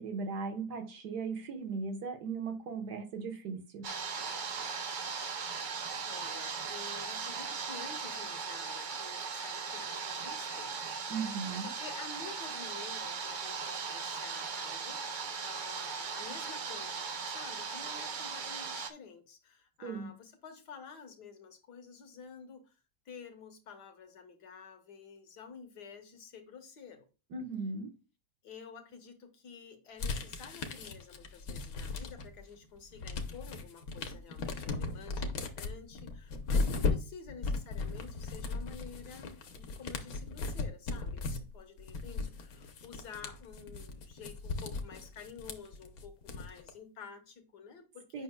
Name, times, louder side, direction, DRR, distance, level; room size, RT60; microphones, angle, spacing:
voice 1, 0.0-3.9 11.1-11.7 19.8-20.1 27.3-27.9 48.1-48.2, right 4 dB, 80° right, 6 dB, 1.7 m, -37 dB
sound 1, 3.8-18.9, right 5 dB, 60° right, 0.4 m, -38 dB
voice 2, 6.1-11.0 11.6-22.8 23.1-27.1 28.4-48.2, left 5 dB, 85° left, 6 dB, 1.8 m, -50 dB
sound 2, 30.0-32.4 32.8-46.7, left 3 dB, 65° left, 1.3 m, -37 dB
8.4 x 5.7 x 2.2 m, 0.32 s
omnidirectional pair, 1.7 m